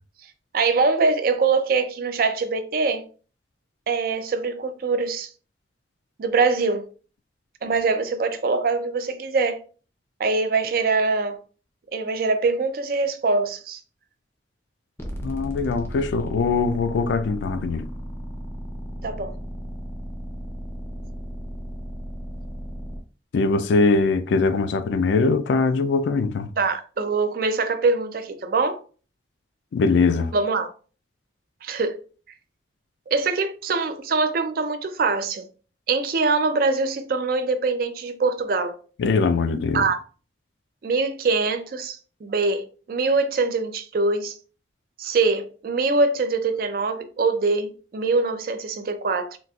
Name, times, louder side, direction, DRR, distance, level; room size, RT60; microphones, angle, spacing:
voice 1, 0.5-3.0 3.9-5.3 6.2-6.9 7.6-9.6 10.2-11.4 11.9-13.8 19.0-19.3 26.6-28.8 30.3-30.7 31.6-32.0 33.1-35.4 35.9-38.8 39.7-40.0 40.8-44.3 45.0-49.4, right 4 dB, 50° right, 0.4 m, -23 dB
sound 1, 15.0-23.0, equal, 15° left, 0.5 m, -35 dB
voice 2, 15.2-17.9 23.3-26.5 29.7-30.3 39.0-39.8, left 4 dB, 70° left, 0.3 m, -21 dB
3.9 x 2.4 x 2.3 m
head